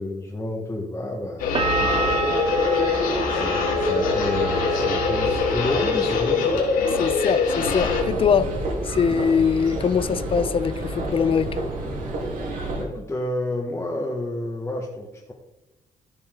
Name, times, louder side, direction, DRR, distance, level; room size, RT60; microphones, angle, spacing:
voice 1, 0.0-2.3 3.3-6.7 12.8-15.3, left 1 dB, 20° left, 1.6 m, -30 dB
sound 1, 1.4-8.0, left 4 dB, 90° left, 2.3 m, -23 dB
sound 2, 1.6-7.2 7.5-8.2, right 5 dB, 40° right, 1.3 m, -30 dB
voice 2, 7.0-8.5 8.8-11.7, left 6 dB, 40° left, 0.7 m, -22 dB
sound 3, 7.6-12.8, right 2 dB, 80° right, 3.4 m, -30 dB
14.0 x 5.7 x 3.9 m
cardioid pair, 100°, 14 cm